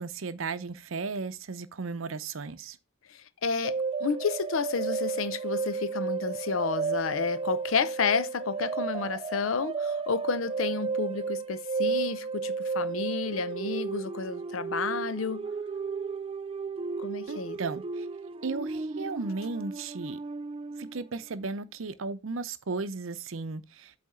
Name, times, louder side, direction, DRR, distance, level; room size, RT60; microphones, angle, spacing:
voice 1, 0.0-2.8 17.3-18.0 18.4-20.2 20.8-23.9, right 4 dB, 70° right, 0.6 m, -35 dB
voice 2, 3.1-15.5 17.0-17.6, left 5 dB, 70° left, 0.6 m, -31 dB
sound 1, 3.6-21.1, right 4 dB, 25° right, 0.3 m, -33 dB
8.5 x 3.4 x 5.4 m
head